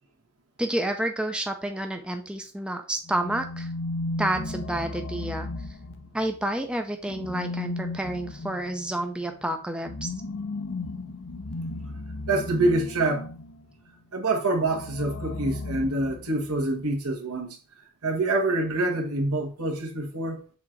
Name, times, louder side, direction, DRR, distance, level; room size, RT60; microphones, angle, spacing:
voice 1, 0.6-3.7 4.2-5.5 6.1-10.1, right 1 dB, 5° right, 0.5 m, -29 dB
sound 1, 3.0-6.4 7.0-13.6 14.6-16.6, left 2 dB, 65° left, 0.7 m, -35 dB
voice 2, 12.3-13.3 14.1-17.6 18.0-20.4, right 2 dB, 75° right, 1.5 m, -26 dB
6.1 x 3.8 x 4.5 m
head